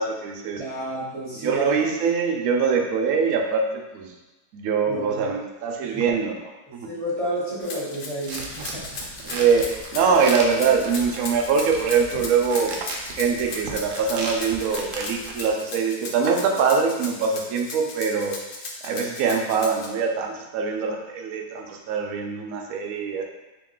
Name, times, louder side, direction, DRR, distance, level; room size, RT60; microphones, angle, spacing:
voice 1, 0.0-0.6 1.3-3.6 3.9-4.1 4.5-6.9 9.2-12.9 13.2-18.4 18.8-23.2, right 5 dB, 70° right, 2 dB, 1.0 m, -23 dB
voice 2, 0.6-1.9 4.9-5.3 5.8-6.0 6.8-8.9, right 1 dB, 40° right, -6 dB, 0.5 m, -30 dB
Rattle (instrument), 7.6-19.9, left 3 dB, 85° left, 0.4 m, -36 dB
sound 1, 8.3-15.5, right 2 dB, 85° right, 1.2 m, -36 dB
3.8 x 2.9 x 3.7 m, 1.1 s
omnidirectional pair, 1.7 m